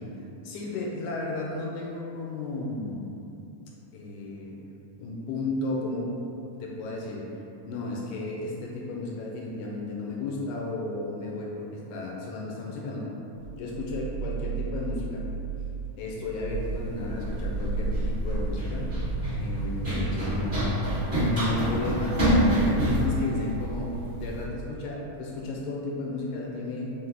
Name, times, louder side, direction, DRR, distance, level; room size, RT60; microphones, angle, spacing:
voice 1, 0.4-3.0 3.9-4.6 5.0-6.1 6.6-7.3 7.6-13.1 13.5-15.3 16.0-18.9 19.4-20.7 21.2-23.9 24.2-26.9, left 2 dB, 80° left, -2 dB, 1.9 m, -33 dB
sound 1, 13.4-16.0 16.3-16.9 17.3-21.5, right 6 dB, 80° right, 2.2 m, -35 dB
Run, 16.5-24.4, equal, 40° right, 0.7 m, -27 dB
Bowed string instrument, 20.0-24.5 24.9-25.0, right 2 dB, 55° right, 1.3 m, -44 dB
5.9 x 2.1 x 3.4 m, 2.7 s
omnidirectional pair, 3.7 m